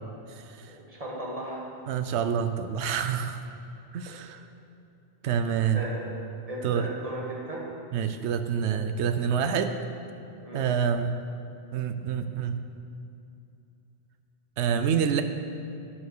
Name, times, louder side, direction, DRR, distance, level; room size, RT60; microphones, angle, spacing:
voice 1, 0.6-1.7 5.7-6.1 6.5-7.7 10.4-10.7, right 1 dB, 35° right, -3 dB, 2.1 m, -36 dB
voice 2, 1.9-3.4 3.9-4.4 5.2-5.8 6.6-6.9 7.9-9.7 10.5-11.1 11.7-12.6 14.6-15.2, right 7 dB, 85° right, 9 dB, 0.9 m, -27 dB
9.4 x 8.6 x 6.7 m, 2.6 s
omnidirectional pair, 1.1 m